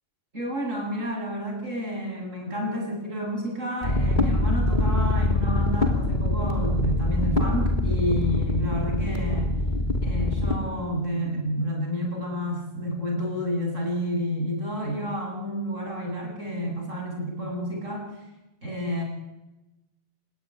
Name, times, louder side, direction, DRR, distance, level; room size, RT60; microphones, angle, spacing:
voice 1, 0.3-9.6 10.0-18.1 18.6-19.0, equal, 75° right, 1 dB, 7.9 m, -30 dB
sound 1, 3.8-10.6, left 2 dB, 35° left, 3.4 m, -24 dB
27.0 x 19.5 x 9.8 m, 1.0 s
omnidirectional pair, 1.3 m